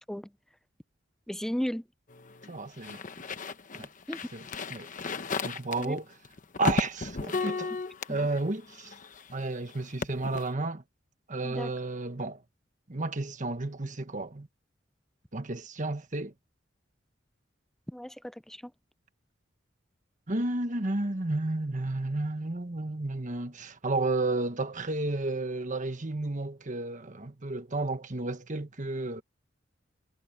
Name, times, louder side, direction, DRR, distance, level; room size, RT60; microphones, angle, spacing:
voice 1, 1.3-1.8 4.1-4.2 5.8-6.0 8.1-8.2 11.4-11.7 17.9-18.7, equal, ahead, 0.4 m, -35 dB
sound 1, 2.1-9.4 9.7-10.5, left 3 dB, 45° left, 1.0 m, -34 dB
voice 2, 2.5-3.0 3.8-3.9 4.3-4.9 5.4-6.1 6.6-7.7 8.1-8.9 9.3-10.8 11.3-12.4 12.9-14.5 15.3-16.3 20.3-29.2, right 2 dB, 40° right, 1.4 m, -32 dB
head